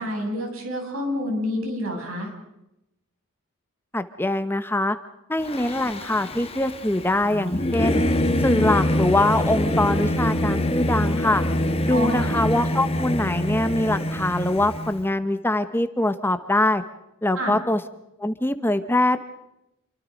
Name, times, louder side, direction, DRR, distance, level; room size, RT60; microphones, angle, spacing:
voice 1, 0.0-2.3 11.9-12.3 17.4-17.5, left 1 dB, 75° right, 2 dB, 7.5 m, -28 dB
voice 2, 3.9-5.0 5.3-8.0 8.4-11.4 11.8-16.8 17.2-17.8 18.2-19.2, left 1 dB, 10° left, 11 dB, 1.0 m, -23 dB
Singing / Musical instrument, 5.4-15.0, left 1 dB, 30° left, 1.7 m, -25 dB
28.5 x 24.0 x 5.2 m, 0.86 s
head